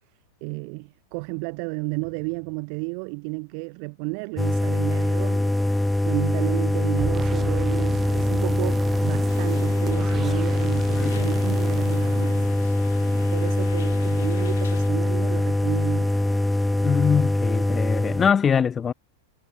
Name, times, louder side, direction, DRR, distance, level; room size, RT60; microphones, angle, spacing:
voice 1, 0.4-12.4 13.3-16.1, right 40 dB or more, 50° right, 4.8 m, -32 dB
sound 1, 4.4-18.3, left 1 dB, 5° left, 0.4 m, -23 dB
sound 2, 7.0-13.1, right 8 dB, 25° right, 1.8 m, -35 dB
sound 3, 9.3-14.9, left 11 dB, 70° left, 6.0 m, -43 dB
voice 2, 16.8-18.9, left 7 dB, 20° left, 1.6 m, -22 dB
figure-of-eight pair, 95°, 0 cm